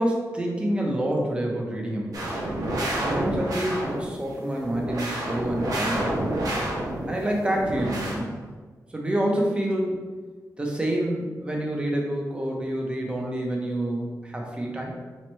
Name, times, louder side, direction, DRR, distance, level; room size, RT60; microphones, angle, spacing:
voice 1, 0.0-2.4 3.0-6.2 7.1-8.3 8.9-10.0 10.6-14.9, right 1 dB, 15° right, -1 dB, 0.7 m, -27 dB
sound 1, 2.1-4.1 4.5-7.2 7.5-8.2, right 1 dB, 65° right, 0.9 m, -29 dB
3.2 x 3.0 x 4.4 m, 1.4 s
wide cardioid pair, 160°, 7 cm